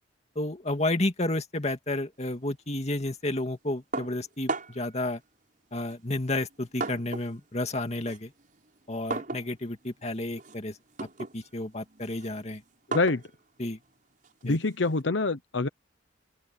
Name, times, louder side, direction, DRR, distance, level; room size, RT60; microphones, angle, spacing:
voice 1, 0.4-5.2 5.7-8.3 8.9-11.1 11.3-12.6 13.6-13.8 14.4-14.6, left 1 dB, 35° left, 2.2 m, -31 dB
sound 1, 3.9-4.9 5.8-7.4 7.7-15.0, right 3 dB, 45° right, 6.2 m, -38 dB
voice 2, 12.9-13.2 14.4-15.7, left 3 dB, 75° left, 0.9 m, -26 dB
open air
head